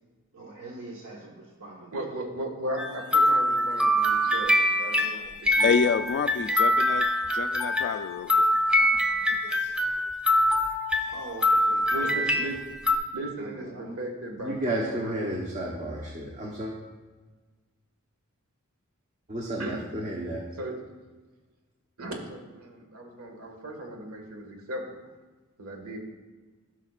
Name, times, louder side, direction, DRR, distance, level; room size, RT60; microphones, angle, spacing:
voice 1, 0.3-2.1 11.1-12.5 13.4-13.9, right 3 dB, 65° right, -4 dB, 1.3 m, -43 dB
voice 2, 1.9-5.7 11.9-12.6 13.1-15.4 19.6-19.8 20.5-20.8 22.0-25.0 25.6-26.0, right 1 dB, 80° right, 2 dB, 1.7 m, -36 dB
sound 1, 2.8-13.0, left 1 dB, 5° right, 0.6 m, -24 dB
voice 3, 5.6-7.0 7.3-8.5, left 5 dB, 55° left, 10 dB, 0.3 m, -27 dB
voice 4, 14.4-16.7 19.3-20.5, right 1 dB, 35° right, -1 dB, 1.0 m, -32 dB
16.0 x 5.9 x 2.4 m, 1.3 s
head